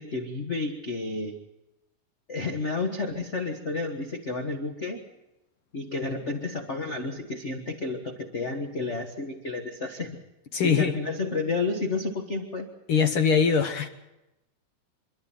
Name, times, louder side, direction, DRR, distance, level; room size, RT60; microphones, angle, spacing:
voice 1, 0.0-1.4 2.3-5.0 5.7-10.2 10.6-12.7, left 3 dB, 40° left, 3 dB, 1.0 m, -31 dB
voice 2, 10.5-11.0 12.9-13.9, left 6 dB, 60° left, 6 dB, 1.6 m, -22 dB
26.0 x 12.5 x 9.1 m, 0.96 s
omnidirectional pair, 3.6 m